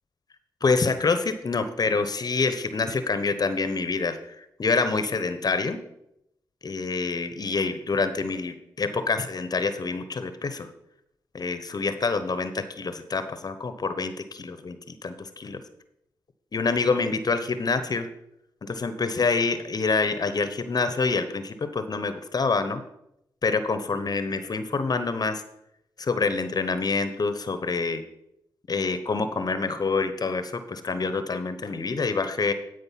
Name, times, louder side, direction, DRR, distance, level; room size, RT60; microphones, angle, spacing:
voice 1, 0.6-5.8 6.6-10.7 11.3-15.6 16.5-18.1 18.6-22.8 23.4-25.4 26.0-28.0 28.7-32.5, left 4 dB, 50° left, 11 dB, 0.9 m, -26 dB
12.5 x 4.9 x 5.7 m, 0.82 s
supercardioid pair, 50°, 9 cm